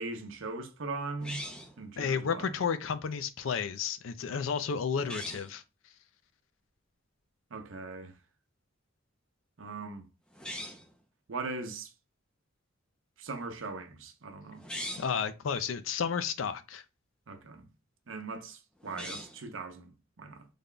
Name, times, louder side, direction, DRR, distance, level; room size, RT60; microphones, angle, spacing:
voice 1, 0.0-1.4 1.8-2.6 7.5-8.1 9.6-10.1 11.3-11.9 13.2-14.6 17.3-17.7 18.1-20.5, right 3 dB, 75° right, 0.7 m, -40 dB
sound 1, 1.2-1.8 5.0-5.5 10.3-10.9 14.5-15.2 18.8-19.5, equal, 5° left, 0.5 m, -41 dB
voice 2, 2.0-5.6 15.0-16.8, left 6 dB, 75° left, 0.4 m, -32 dB
3.4 x 2.2 x 3.8 m
head